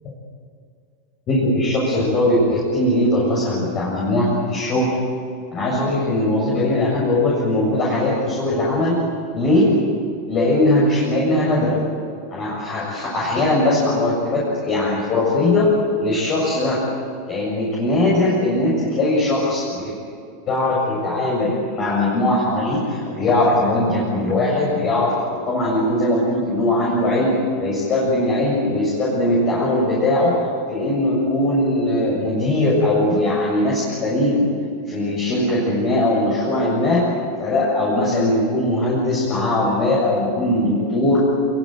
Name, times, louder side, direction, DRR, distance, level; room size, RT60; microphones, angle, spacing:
voice 1, 1.3-5.0 5.5-9.0 9.3-9.7 10.3-11.8 12.3-15.7 16.0-16.8 17.3-19.9 20.5-27.3 27.6-34.4 34.9-37.1 37.4-41.2, left 1 dB, 30° left, -5 dB, 7.3 m, -20 dB
27.0 x 24.0 x 8.0 m, 2.4 s
supercardioid pair, 165°, 0 cm